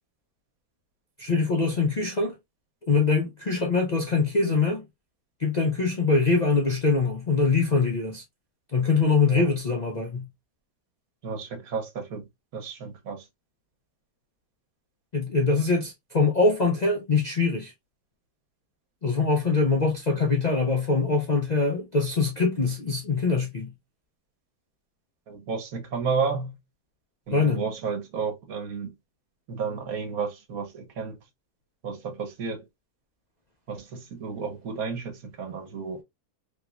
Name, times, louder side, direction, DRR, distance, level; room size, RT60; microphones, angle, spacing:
voice 1, 1.2-2.3 2.9-4.9 5.4-8.2 8.7-10.3 15.1-17.7 19.0-23.7 27.3-27.6, left 4 dB, 80° left, 0.3 m, -23 dB
voice 2, 11.2-12.2 12.5-13.3 25.3-26.5 27.3-28.9 29.5-31.2 31.8-32.7 33.7-36.0, right 5 dB, 65° right, 1.3 m, -32 dB
3.6 x 2.9 x 2.3 m
omnidirectional pair, 1.7 m